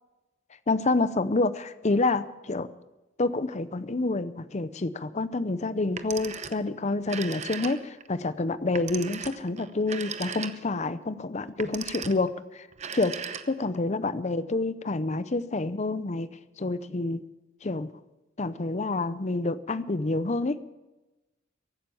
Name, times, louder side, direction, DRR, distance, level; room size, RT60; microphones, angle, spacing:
voice 1, 0.7-2.7 3.2-12.7 12.9-13.2 13.5-16.3 16.6-17.2 17.6-17.9 18.4-20.7, left 2 dB, 35° left, 15 dB, 0.7 m, -28 dB
Telephone, 5.8-6.7 7.0-8.1 8.7-10.8 11.5-12.3 12.7-13.8, right 6 dB, 35° right, 0.8 m, -38 dB
15.5 x 11.5 x 7.0 m, 1.0 s
head